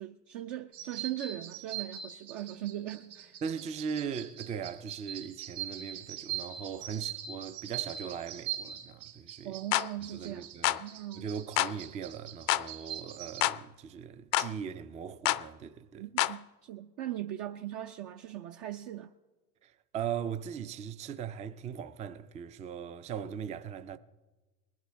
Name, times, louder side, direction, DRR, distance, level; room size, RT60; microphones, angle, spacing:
voice 1, 0.0-3.4 9.4-10.5 10.8-11.2 16.0-19.1, right 13 dB, 60° right, 0.7 m, -39 dB
sound 1, 0.7-13.4, right 10 dB, 75° right, 2.7 m, -42 dB
voice 2, 3.4-9.6 10.1-10.8 11.1-16.3 19.6-24.0, right 7 dB, 15° right, 0.3 m, -39 dB
sound 2, 9.7-9.9 10.6-10.8 11.6-11.7 12.5-12.7 13.4-13.6 14.3-14.5 15.3-15.4 16.2-16.4, left 15 dB, 45° left, 0.5 m, -27 dB
20.0 x 11.5 x 3.4 m
hypercardioid pair, 90°, 46 cm